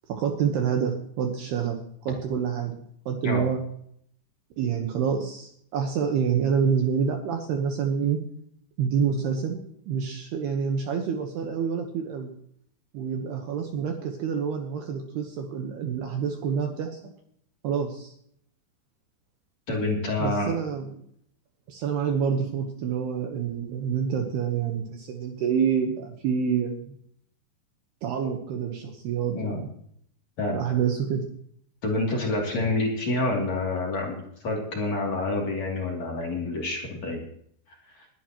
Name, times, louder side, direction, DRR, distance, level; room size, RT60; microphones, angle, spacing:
voice 1, 0.1-2.7 3.1-3.6 4.6-8.2 8.8-12.3 12.9-17.0 17.6-18.1 20.2-21.0 21.7-27.0 28.0-29.7 30.5-31.3, right 7 dB, 70° right, 3 dB, 2.8 m, -27 dB
voice 2, 19.7-20.5 29.3-29.6 30.4-30.6 31.8-34.2 34.4-37.2, left 2 dB, 40° left, -2 dB, 3.5 m, -27 dB
21.0 x 12.0 x 3.0 m, 0.67 s
omnidirectional pair, 5.7 m